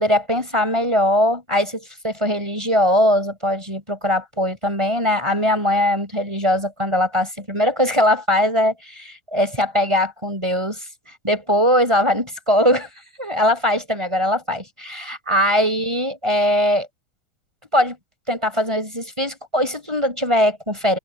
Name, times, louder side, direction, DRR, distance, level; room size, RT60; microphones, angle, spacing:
voice 1, 0.0-10.9 11.2-12.9 13.2-16.9 17.7-18.0 18.3-21.0, left 1 dB, 10° right, 5.7 m, -20 dB
omnidirectional pair, 3.6 m